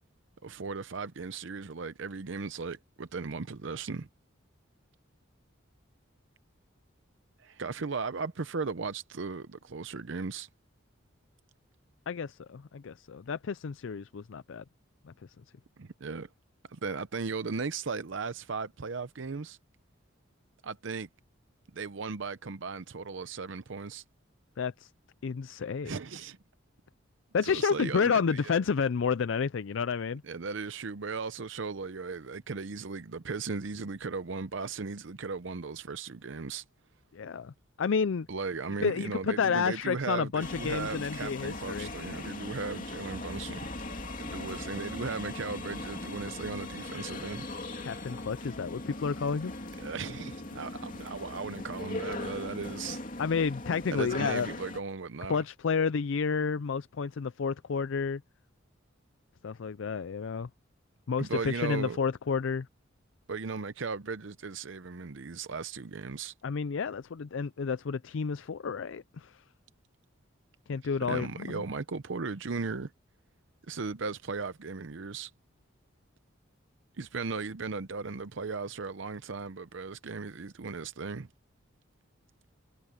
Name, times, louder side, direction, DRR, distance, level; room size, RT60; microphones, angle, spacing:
voice 1, 0.4-4.1 7.4-10.5 15.8-16.3 16.7-19.6 20.6-21.1 21.7-24.0 25.8-26.4 27.4-28.6 30.2-36.6 38.3-43.7 44.2-47.4 49.8-53.0 53.9-55.4 61.2-62.0 63.3-66.3 71.1-72.9 73.7-75.3 77.0-81.3, right 4 dB, 65° right, 0.7 m, -37 dB
voice 2, 12.1-14.6 15.0-15.1 24.6-24.9 25.2-25.9 27.3-30.2 37.1-37.5 37.8-38.3 38.8-41.9 47.8-49.5 53.2-54.5 55.3-58.2 59.4-60.5 61.1-62.7 66.4-69.4 70.7-71.6, left 5 dB, 70° left, 0.4 m, -30 dB
sound 1, 40.4-54.8, left 2 dB, 40° left, 2.9 m, -39 dB
head